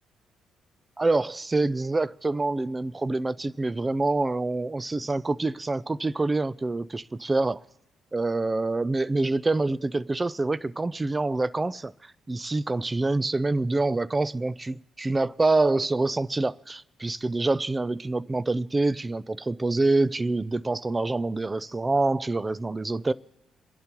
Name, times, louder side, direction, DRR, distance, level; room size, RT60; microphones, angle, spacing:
voice 1, 1.0-7.6 8.1-23.1, right 2 dB, 20° right, 0.4 m, -26 dB
29.0 x 11.0 x 3.0 m
cardioid pair, 90°, 0 cm